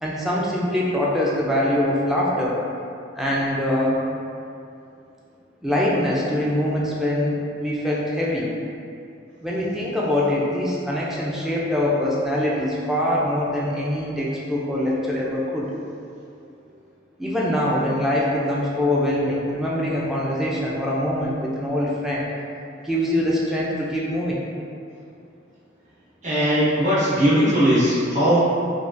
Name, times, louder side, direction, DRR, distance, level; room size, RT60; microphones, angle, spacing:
voice 1, 0.0-2.6 3.2-4.0 5.6-8.5 9.4-15.7 17.2-22.3 22.8-24.4, left 1 dB, ahead, -6 dB, 0.3 m, -23 dB
voice 2, 26.2-28.4, equal, 40° right, -10 dB, 0.9 m, -19 dB
3.4 x 2.2 x 2.5 m, 2.5 s
head